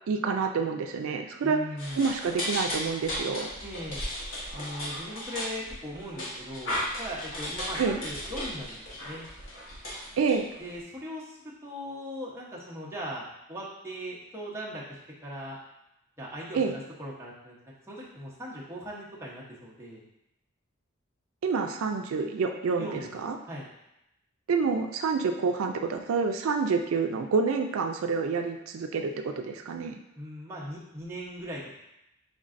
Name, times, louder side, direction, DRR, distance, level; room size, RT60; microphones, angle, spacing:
voice 1, 0.1-1.6 1.9-3.5 7.8-8.0 10.2-10.4 16.5-16.7 21.4-23.4 24.5-29.9, right 5 dB, 85° right, 5 dB, 0.4 m, -28 dB
voice 2, 1.4-2.1 3.6-4.0 4.5-9.2 10.6-15.6 16.2-17.6 17.9-20.0 22.7-23.1 23.5-23.7 30.2-31.6, equal, 10° right, -6 dB, 0.9 m, -39 dB
sound 1, 1.8-10.8, left 1 dB, 70° left, 1.3 m, -36 dB
5.2 x 3.7 x 2.5 m, 0.87 s
head